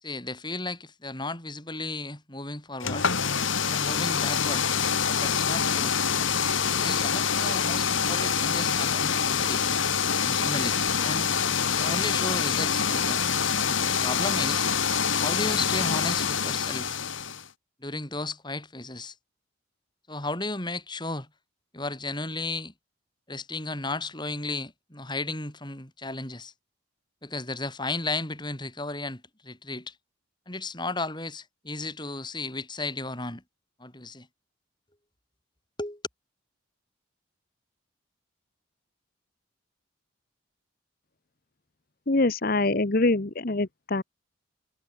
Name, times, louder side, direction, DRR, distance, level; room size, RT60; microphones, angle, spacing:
voice 1, 0.0-3.1 3.7-4.7 5.1-6.0 6.8-9.6 10.2-11.4 11.8-13.2 13.7-14.7 15.2-16.9 17.8-19.2 20.1-21.3 21.7-22.7 23.3-26.5 27.2-29.9 30.5-33.4 33.8-34.3 35.8-36.0, left 2 dB, 20° left, 4.2 m, -34 dB
sound 1, 2.8-17.4, left 7 dB, 70° left, 2.1 m, -26 dB
voice 2, 42.1-44.0, left 2 dB, 45° left, 1.0 m, -24 dB
head